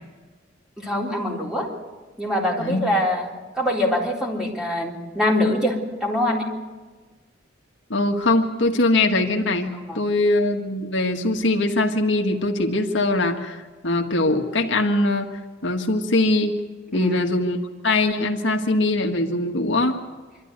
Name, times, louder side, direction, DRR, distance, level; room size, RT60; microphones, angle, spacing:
voice 1, 0.8-1.7 2.2-3.3 3.5-6.5 9.9-10.0 16.9-17.3, left 1 dB, 5° right, -2 dB, 3.7 m, -24 dB
voice 2, 7.9-15.3 15.6-16.6 16.9-17.6 17.8-20.0, left 2 dB, 70° left, 3 dB, 1.7 m, -22 dB
25.5 x 13.0 x 9.5 m, 1.4 s
head